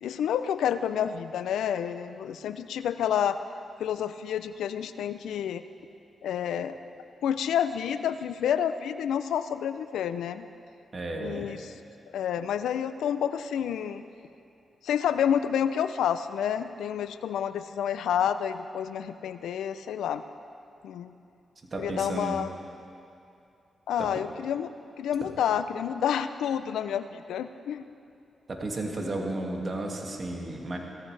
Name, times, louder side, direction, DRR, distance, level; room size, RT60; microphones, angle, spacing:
voice 1, 0.0-3.4 3.8-5.6 6.2-6.8 7.2-10.5 11.2-11.7 12.1-14.0 14.8-20.2 20.8-21.1 21.8-22.5 23.9-27.8, left 9 dB, 85° left, 12 dB, 0.4 m, -29 dB
voice 2, 10.9-11.5 21.7-22.4 24.0-24.1 25.2-25.3 28.5-30.8, right 2 dB, 45° right, 0 dB, 2.1 m, -33 dB
18.0 x 14.5 x 3.3 m, 2.6 s
cardioid pair, 60°, 0 cm